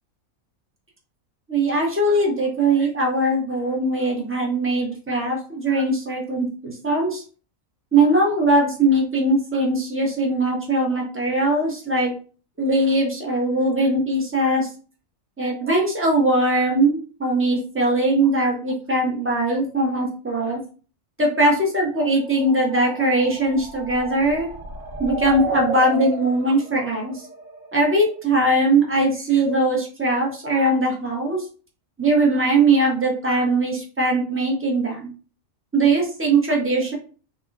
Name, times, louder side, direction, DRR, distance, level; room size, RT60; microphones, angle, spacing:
voice 1, 1.5-7.2 7.9-12.1 12.6-14.7 15.4-20.6 21.2-24.5 25.0-27.2 27.7-31.4 32.0-35.1 35.7-36.9, right 2 dB, 15° right, -1 dB, 0.4 m, -20 dB
sound 1, 22.4-28.2, right 2 dB, 45° right, 1.2 m, -33 dB
3.5 x 2.0 x 2.4 m, 0.37 s
omnidirectional pair, 1.4 m